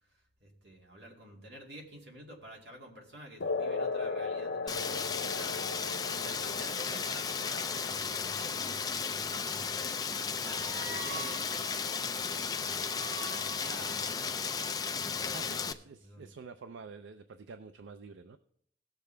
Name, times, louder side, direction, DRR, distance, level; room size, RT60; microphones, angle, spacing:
voice 1, 0.4-5.6 6.0-9.8 10.1-14.4 14.9-15.7 16.0-16.3, equal, 60° right, -1 dB, 2.3 m, -49 dB
sound 1, 3.4-10.4, left 4 dB, 85° left, 0.6 m, -38 dB
Rain, 4.7-15.7, left 6 dB, 20° left, 0.4 m, -34 dB
sound 2, 6.1-14.2, right 3 dB, 20° right, 2.0 m, -49 dB
voice 2, 15.3-18.4, right 4 dB, 80° right, 10 dB, 0.4 m, -48 dB
17.0 x 6.8 x 3.3 m, 0.70 s
head